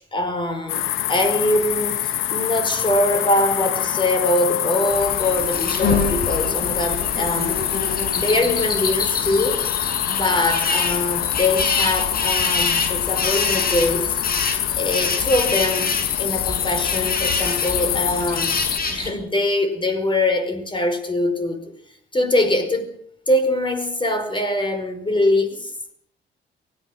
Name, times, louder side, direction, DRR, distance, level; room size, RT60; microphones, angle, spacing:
voice 1, 0.0-9.7 10.1-14.2 14.8-18.6 18.9-21.6 22.1-23.0 23.3-25.9, left 1 dB, 25° left, 9 dB, 4.9 m, -23 dB
sound 1, 0.7-18.8, left 12 dB, 90° left, 1.1 m, -25 dB
sound 2, 4.9-19.1, left 3 dB, 50° left, 6.6 m, -26 dB
24.0 x 17.5 x 6.4 m, 0.67 s
cardioid pair, 90°, 20 cm